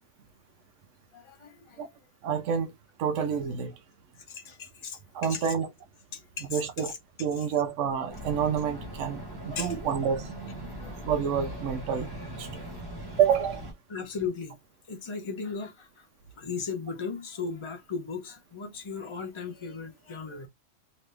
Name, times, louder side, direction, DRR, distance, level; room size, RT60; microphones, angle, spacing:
voice 1, 1.1-1.8 4.3-5.4 6.1-6.9 9.6-9.7 10.8-10.9 13.9-14.6 14.9-16.0 16.4-20.5, left 5 dB, 30° left, 0.7 m, -37 dB
voice 2, 2.2-2.7 3.0-3.7 5.1-5.7 6.5-10.3 11.0-12.6 13.2-13.7, right 7 dB, 75° right, 1.0 m, -28 dB
sound 1, 8.1-13.7, right 1 dB, 20° right, 1.1 m, -40 dB
3.2 x 2.7 x 3.3 m
omnidirectional pair, 1.3 m